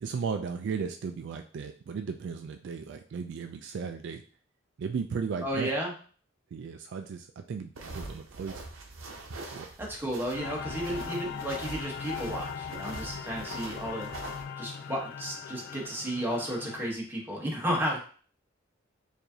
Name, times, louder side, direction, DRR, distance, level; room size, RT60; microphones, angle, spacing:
voice 1, 0.0-4.2 4.8-5.7 6.5-8.7 9.5-9.7, right 5 dB, 60° right, 6 dB, 0.3 m, -35 dB
voice 2, 5.4-5.9 9.8-14.1 14.5-18.0, equal, 10° right, -2 dB, 1.0 m, -33 dB
sound 1, 7.7-14.4, right 2 dB, 75° right, 0.7 m, -43 dB
sound 2, 10.3-16.9, left 7 dB, 55° left, 0.3 m, -40 dB
4.7 x 2.6 x 2.7 m, 0.42 s
head